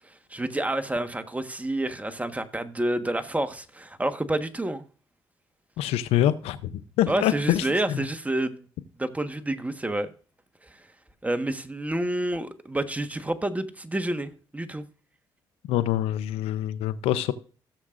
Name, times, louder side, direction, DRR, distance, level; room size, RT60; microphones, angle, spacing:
voice 1, 0.3-4.8 7.1-8.6 9.0-10.1 11.2-14.8, right 1 dB, 15° right, 1.4 m, -29 dB
voice 2, 5.8-6.6 7.0-7.6 15.7-17.3, left 12 dB, 80° left, 0.7 m, -24 dB
16.0 x 7.3 x 2.5 m
supercardioid pair, 60°, 10 cm